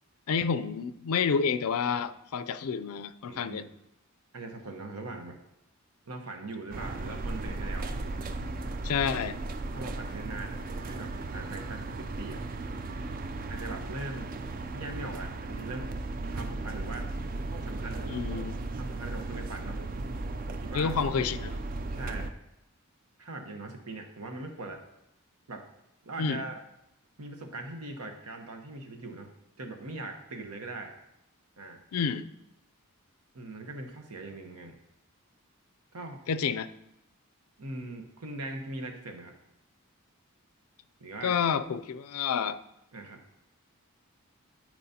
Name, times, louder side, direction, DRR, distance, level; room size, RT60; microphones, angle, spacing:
voice 1, 0.3-3.6 8.8-9.4 18.1-18.6 20.7-21.6 26.2-26.4 31.9-32.3 36.3-36.7 41.2-42.6, left 6 dB, 80° left, 12 dB, 0.4 m, -29 dB
voice 2, 3.3-3.7 4.3-5.4 6.1-7.9 9.7-12.4 13.5-14.3 14.7-15.9 16.3-17.1 17.6-18.2 18.8-19.8 20.5-20.9 21.9-22.3 23.2-24.8 25.5-25.6 26.0-26.6 27.2-29.3 29.6-30.9 31.6-31.8 33.3-34.8 35.9-36.2 37.6-39.3 41.0-41.3 42.9-43.2, right 2 dB, 90° right, 4 dB, 1.0 m, -41 dB
sound 1, 6.7-22.3, right 2 dB, 40° right, 0.4 m, -36 dB
12.0 x 4.7 x 2.8 m, 0.84 s
head